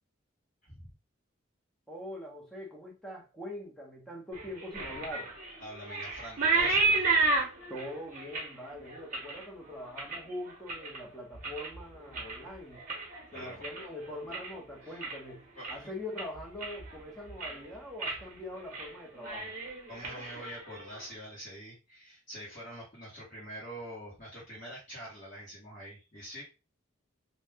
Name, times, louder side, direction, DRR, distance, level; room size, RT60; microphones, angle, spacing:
voice 1, 1.9-5.3 7.7-12.8 13.3-15.4 15.7-19.5, left 1 dB, ahead, 0.8 m, -43 dB
sound 1, 4.3-11.0 11.3-11.8 12.1-14.6 14.9-15.3 15.6-15.8 16.2-17.0 17.3-17.6 18.0-18.2 18.5-18.9 19.2-21.0, right 3 dB, 40° right, 1.0 m, -32 dB
voice 2, 5.6-7.3 13.3-13.6 14.8-15.0 15.5-15.9 19.9-26.4, equal, 40° left, 1.3 m, -45 dB
2.7 x 2.3 x 3.5 m
head